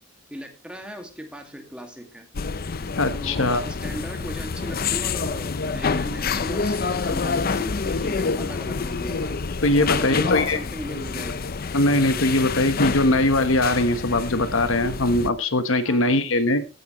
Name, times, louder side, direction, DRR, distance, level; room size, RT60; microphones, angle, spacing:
voice 1, 0.3-2.3 3.2-9.4 9.8-11.5 15.8-16.3, equal, 5° right, 4 dB, 2.1 m, -37 dB
sound 1, 2.3-15.3, left 4 dB, 50° left, 0.6 m, -27 dB
voice 2, 3.0-3.6 9.6-10.6 11.7-16.6, left 2 dB, 75° left, 11 dB, 1.2 m, -21 dB
15.5 x 9.8 x 3.1 m, 0.32 s
head